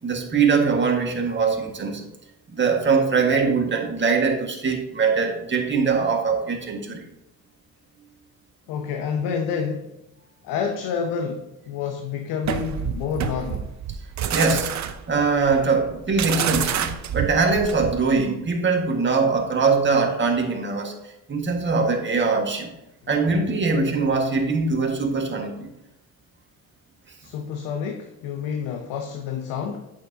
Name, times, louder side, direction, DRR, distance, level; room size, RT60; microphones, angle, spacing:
voice 1, 0.0-2.0 2.5-7.0 14.3-14.7 15.1-20.9 21.3-22.7 23.1-25.7, right 4 dB, 35° right, 2 dB, 1.7 m, -22 dB
voice 2, 8.7-9.9 10.4-13.7 27.2-29.9, left 6 dB, 85° left, 4 dB, 0.8 m, -29 dB
sound 1, 12.4-18.1, right 9 dB, 55° right, 0.7 m, -28 dB
8.5 x 6.6 x 2.8 m, 0.88 s
supercardioid pair, 85°, 35 cm